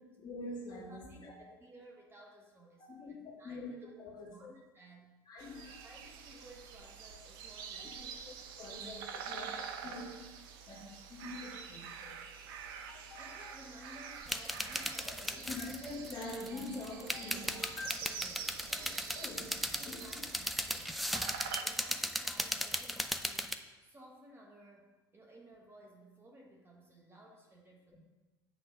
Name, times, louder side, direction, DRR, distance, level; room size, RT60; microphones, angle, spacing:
voice 1, 0.2-1.3 2.8-4.5 5.3-5.8 7.8-7.9 8.6-10.1 10.7-12.2 15.1-17.8 19.2-19.5 19.9-20.3, left 2 dB, 35° left, -3 dB, 2.2 m, -45 dB
voice 2, 0.9-3.9 4.2-5.1 5.8-8.4 8.8-8.9 9.3-10.2 13.2-15.7 17.2-17.4 17.9-19.1 19.4-23.5 23.8-27.9, right 1 dB, 20° right, -1 dB, 1.3 m, -57 dB
sound 1, 5.4-21.6, right 6 dB, 65° right, 0.7 m, -46 dB
sound 2, 12.9-18.0, left 3 dB, 70° left, 1.2 m, -54 dB
sound 3, 14.2-23.6, equal, ahead, 0.4 m, -37 dB
8.8 x 3.7 x 5.3 m, 1.2 s
figure-of-eight pair, 75°, 13 cm